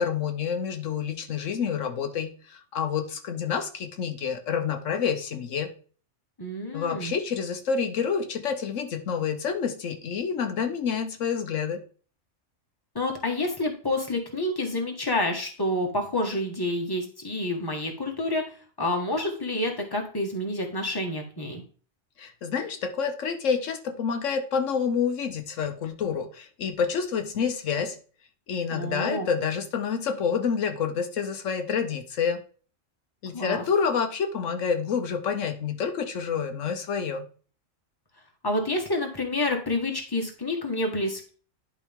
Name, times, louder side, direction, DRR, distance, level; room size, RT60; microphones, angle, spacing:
voice 1, 0.0-5.7 6.7-11.8 22.2-28.0 28.5-32.4 33.2-37.3, left 6 dB, 75° left, 7 dB, 1.2 m, -28 dB
voice 2, 6.4-7.1 12.9-18.4 18.8-21.6 28.7-29.3 33.3-33.6 38.4-41.3, left 1 dB, 20° left, 1 dB, 1.6 m, -28 dB
11.0 x 4.9 x 3.6 m, 0.40 s
omnidirectional pair, 1.3 m